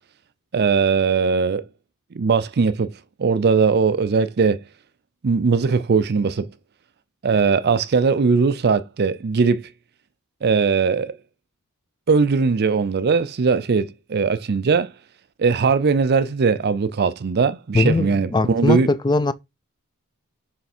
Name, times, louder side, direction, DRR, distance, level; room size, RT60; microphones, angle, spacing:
voice 1, 0.5-1.7 2.1-2.9 3.2-4.6 5.2-6.5 7.2-9.7 10.4-11.2 12.1-14.9 15.4-18.9, right 5 dB, 45° right, 0.5 m, -19 dB
voice 2, 17.7-19.3, left 3 dB, 20° left, 0.4 m, -20 dB
6.6 x 3.4 x 4.3 m
head